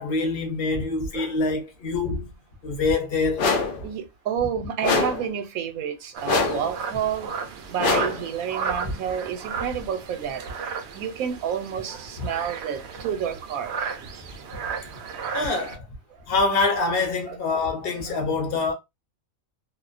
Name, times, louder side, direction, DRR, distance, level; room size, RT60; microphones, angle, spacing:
voice 1, 0.0-2.3 2.6-3.5 8.8-8.9 12.2-12.3 15.3-15.9 16.3-18.7, left 3 dB, 50° left, 0.9 m, -25 dB
sound 1, 3.4-3.8 4.8-5.3 6.3-6.7 7.8-8.3, left 4 dB, 80° left, 0.4 m, -23 dB
voice 2, 3.8-7.3 7.7-10.4 10.9-13.7 17.3-17.6 18.1-18.2, right 8 dB, 85° right, 1.0 m, -29 dB
sound 2, 6.1-15.8, right 6 dB, 65° right, 0.7 m, -34 dB
2.5 x 2.1 x 2.4 m
omnidirectional pair, 1.4 m